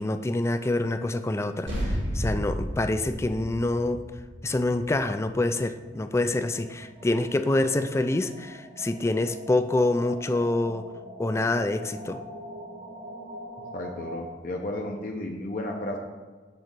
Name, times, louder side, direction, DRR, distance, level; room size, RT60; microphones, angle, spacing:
voice 1, 0.0-4.0 4.4-10.9 11.2-12.2, left 2 dB, 15° left, 9 dB, 0.3 m, -26 dB
sound 1, 1.7-6.5, equal, 80° right, 1.9 m, -33 dB
sound 2, 4.5-4.6 4.8-4.9 5.1-14.2, equal, 25° right, 0.9 m, -44 dB
voice 2, 13.7-16.0, left 1 dB, 45° left, 1 dB, 0.7 m, -33 dB
7.7 x 4.0 x 6.0 m, 1.4 s
head